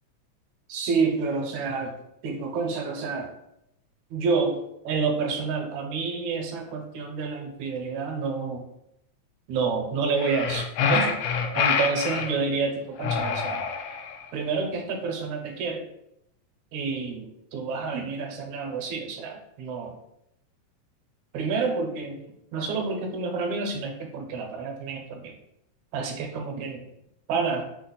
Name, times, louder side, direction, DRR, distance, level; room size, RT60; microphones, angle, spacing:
voice 1, 0.7-2.0 2.2-3.3 4.1-4.6 4.8-8.6 9.5-11.3 11.5-13.6 14.3-15.8 16.7-20.0 21.3-22.2 22.5-25.3 25.9-26.8 27.3-27.7, right 4 dB, 75° right, 3 dB, 2.0 m, -29 dB
sound 1, 10.2-12.3 13.0-14.2, left 6 dB, 80° left, 1.5 m, -26 dB
6.2 x 2.1 x 3.8 m, 0.79 s
omnidirectional pair, 3.5 m